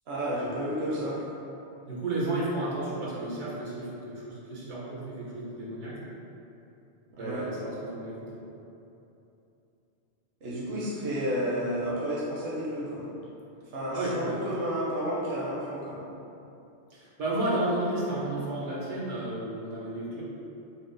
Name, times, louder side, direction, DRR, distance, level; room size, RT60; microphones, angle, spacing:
voice 1, 0.1-1.2 7.1-7.5 10.4-13.0 13.7-16.0, equal, 65° right, -6 dB, 1.0 m, -31 dB
voice 2, 1.9-6.0 7.2-8.4 13.9-14.3 16.9-20.2, right 1 dB, 85° right, -6 dB, 1.3 m, -32 dB
5.8 x 2.0 x 3.8 m, 2.8 s
omnidirectional pair, 1.2 m